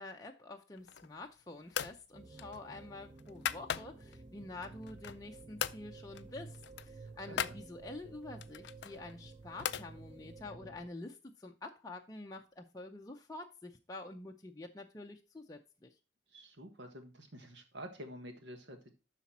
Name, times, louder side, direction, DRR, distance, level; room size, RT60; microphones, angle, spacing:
voice 1, 0.0-15.9, left 2 dB, 20° left, 0.6 m, -48 dB
sound 1, 0.8-1.2 1.7-2.0 2.4-4.2 4.6-5.3 5.6-5.8 6.1-6.3 6.5-7.6 8.4-9.9, left 9 dB, 60° left, 0.4 m, -39 dB
sound 2, 2.1-10.9, right 3 dB, 25° right, 0.5 m, -52 dB
voice 2, 7.3-7.6 16.3-18.9, equal, 65° right, 1.4 m, -49 dB
12.0 x 4.2 x 4.2 m
head